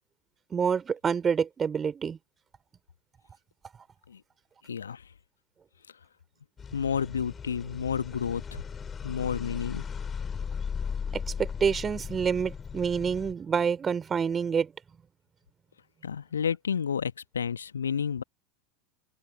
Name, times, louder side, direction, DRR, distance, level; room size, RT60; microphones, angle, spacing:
voice 1, 0.5-2.2 11.1-14.7, right 6 dB, 20° right, 3.6 m, -27 dB
voice 2, 4.6-5.0 6.7-8.6 9.0-9.8 16.0-18.2, left 7 dB, 75° left, 1.6 m, -31 dB
sound 1, 6.6-13.3, left 6 dB, 20° left, 4.1 m, -37 dB
open air
figure-of-eight pair, 80°, 0 cm